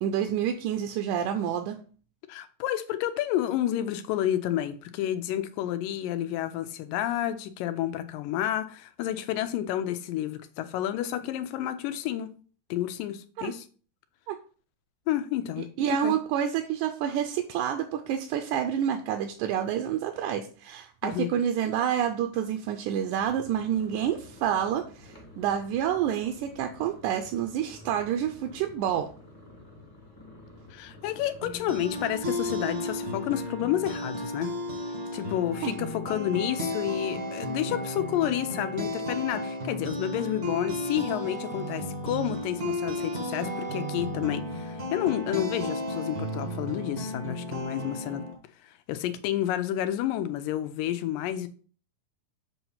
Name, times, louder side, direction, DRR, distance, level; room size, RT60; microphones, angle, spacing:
voice 1, 0.0-1.8 13.4-13.5 14.3-14.4 15.8-29.1 35.6-35.8, right 9 dB, 80° right, 1.9 m, -28 dB
voice 2, 2.3-12.3 12.7-13.7 15.1-15.7 16.0-16.1 21.0-21.3 30.7-34.6 35.1-48.2 48.9-51.5, left 12 dB, 90° left, 2.3 m, -30 dB
sound 1, 23.1-33.0, left 2 dB, 15° left, 0.8 m, -50 dB
sound 2, 31.4-48.3, left 1 dB, 65° right, 0.9 m, -33 dB
7.7 x 2.9 x 5.6 m
omnidirectional pair, 3.9 m